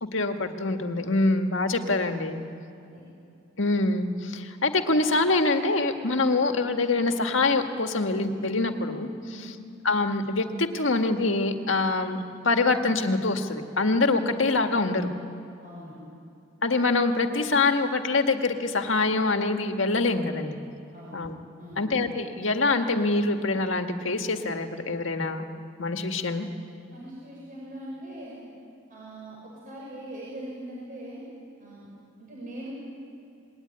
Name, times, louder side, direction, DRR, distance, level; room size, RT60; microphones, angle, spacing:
voice 1, 0.1-2.4 3.6-9.1 9.8-15.1 16.6-20.6 21.1-21.3 21.8-25.4 25.8-26.5, left 3 dB, 70° left, 5 dB, 1.9 m, -25 dB
voice 2, 15.6-16.0 20.9-21.3 21.6-21.9 26.9-28.4 28.9-31.2 31.6-31.9 32.2-32.7, right 1 dB, 45° right, -4 dB, 6.0 m, -41 dB
26.5 x 21.0 x 9.9 m, 2.7 s
head